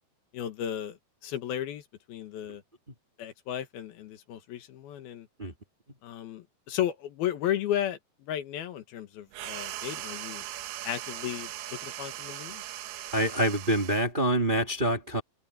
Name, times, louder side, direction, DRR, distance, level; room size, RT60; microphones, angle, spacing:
voice 1, 0.3-2.6 3.2-5.3 6.0-10.4 10.8-12.6, left 11 dB, 80° left, 3.3 m, -34 dB
sound 1, 9.3-14.1, right 13 dB, 85° right, 3.2 m, -39 dB
voice 2, 13.1-15.2, right 1 dB, 20° right, 1.7 m, -26 dB
open air
omnidirectional pair, 4.3 m